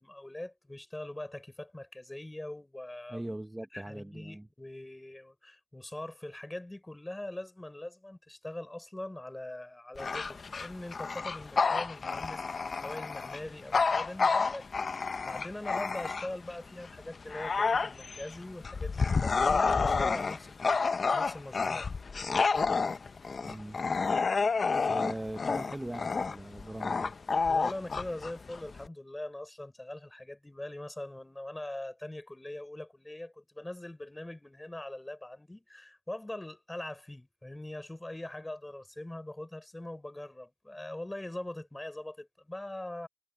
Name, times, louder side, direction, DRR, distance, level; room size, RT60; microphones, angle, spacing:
voice 1, 0.0-3.4 3.7-21.9 27.5-43.1, left 1 dB, 20° left, 6.5 m, -42 dB
voice 2, 3.1-4.5 23.4-23.8 24.7-27.1, right 1 dB, 15° right, 1.3 m, -40 dB
Bark / Growling, 10.0-16.5 17.0-28.9, left 4 dB, 60° left, 0.9 m, -29 dB
cardioid pair, 45°, 0 cm